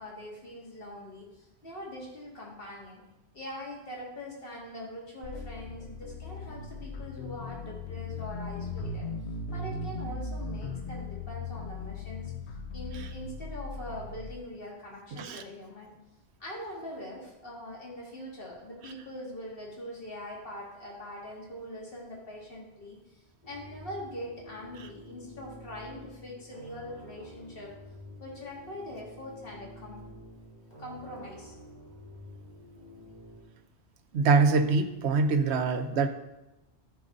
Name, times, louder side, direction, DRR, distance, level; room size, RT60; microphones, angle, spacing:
voice 1, 0.0-3.0 3.3-9.1 9.5-12.3 12.7-15.9 16.4-23.0 23.5-27.7 28.2-30.0 30.8-31.5, left 1 dB, 55° left, -3 dB, 2.3 m, -42 dB
sound 1, 5.2-14.3, left 3 dB, 80° left, 1.1 m, -38 dB
voice 2, 15.1-15.4 34.1-36.1, right 4 dB, 75° right, 8 dB, 1.0 m, -24 dB
sound 2, 23.4-33.4, equal, 40° left, 2.3 m, -49 dB
13.0 x 4.7 x 3.8 m, 0.96 s
omnidirectional pair, 1.1 m